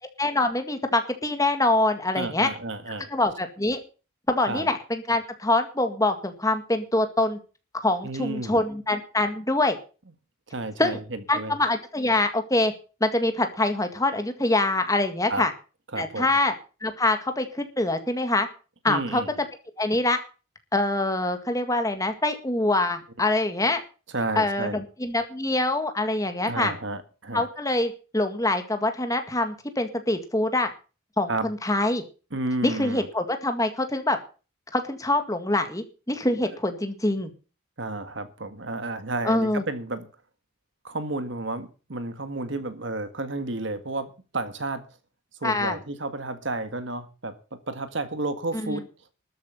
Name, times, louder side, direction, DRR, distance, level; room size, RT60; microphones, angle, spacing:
voice 1, 0.2-2.5 3.1-3.8 4.3-7.4 7.8-9.8 10.8-11.0 11.3-12.7 13.0-15.5 16.0-16.5 16.8-18.5 18.8-19.2 19.8-20.2 20.7-23.8 24.4-26.7 27.3-30.7 31.2-32.0 32.6-34.2 34.7-37.3 39.2-39.6 45.4-45.8 48.5-48.8, left 2 dB, 15° left, 1.9 m, -24 dB
voice 2, 2.1-3.1 4.5-4.7 8.0-8.6 10.5-11.5 15.3-15.4 15.9-16.4 18.9-19.3 24.1-24.8 26.5-27.5 31.3-31.5 32.3-33.1 37.8-40.1 40.8-44.8 45.4-47.4 47.7-48.9, right 2 dB, 60° right, 1.7 m, -31 dB
13.0 x 8.0 x 8.1 m
head